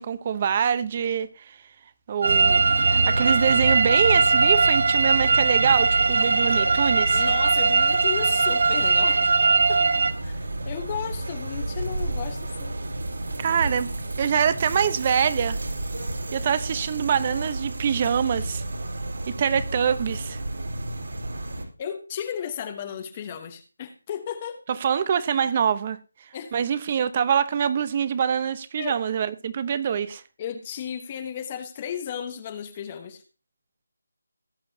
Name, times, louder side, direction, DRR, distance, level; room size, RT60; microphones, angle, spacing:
voice 1, 0.0-1.6 2.1-7.2 13.4-13.9 14.2-15.6 16.3-18.6 19.3-20.4 24.7-26.0 26.5-30.2, right 7 dB, 25° right, 0.9 m, -24 dB
sound 1, 2.2-10.1, right 4 dB, 55° right, 1.0 m, -20 dB
sound 2, 2.2-21.6, right 1 dB, 70° right, 4.3 m, -31 dB
voice 2, 7.1-9.2 9.7-9.9 10.2-12.7 21.8-24.6 26.3-26.5 28.8-28.9 30.4-33.2, left 8 dB, 20° left, 1.1 m, -34 dB
18.5 x 8.6 x 2.8 m
figure-of-eight pair, 170°, 0 cm